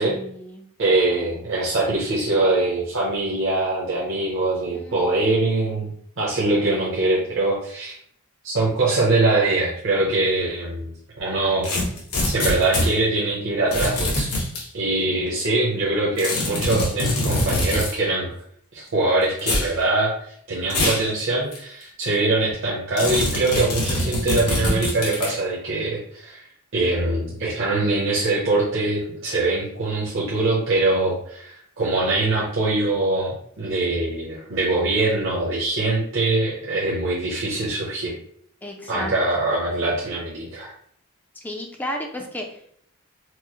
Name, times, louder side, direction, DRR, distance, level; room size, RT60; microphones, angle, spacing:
voice 1, 0.0-0.6 4.7-5.6 15.1-15.3 38.6-39.1 41.4-42.8, equal, 10° left, 2 dB, 0.4 m, -34 dB
voice 2, 0.8-5.9 6.2-7.9 8.4-11.7 12.2-14.3 14.7-18.3 18.7-20.1 20.5-26.4 26.7-38.1 38.9-40.7, right 2 dB, 60° right, -6 dB, 0.8 m, -23 dB
sound 1, 11.6-12.9 13.7-14.6 16.2-17.9 19.4-19.7 20.7-21.1 21.5-21.6 23.0-25.4, left 1 dB, 90° left, 1.1 m, -23 dB
4.5 x 2.0 x 2.9 m, 0.64 s
head